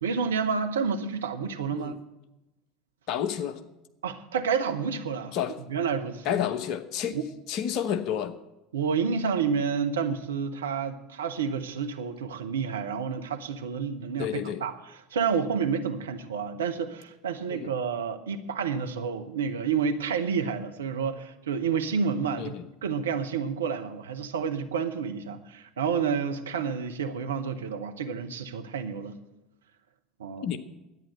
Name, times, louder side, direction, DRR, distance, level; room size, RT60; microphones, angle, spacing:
voice 1, 0.0-1.9 4.0-5.4 5.7-6.4 7.1-7.2 8.7-14.7 15.1-22.6 22.8-29.2 30.2-30.5, right 6 dB, 75° right, 7 dB, 0.9 m, -29 dB
voice 2, 3.1-3.6 5.3-5.6 6.2-7.2 7.5-8.4 14.2-14.6 17.5-17.7 22.4-22.7 30.4-30.6, left 9 dB, 50° left, 10 dB, 1.0 m, -30 dB
11.0 x 9.2 x 8.1 m, 0.97 s
figure-of-eight pair, 70°, 0 cm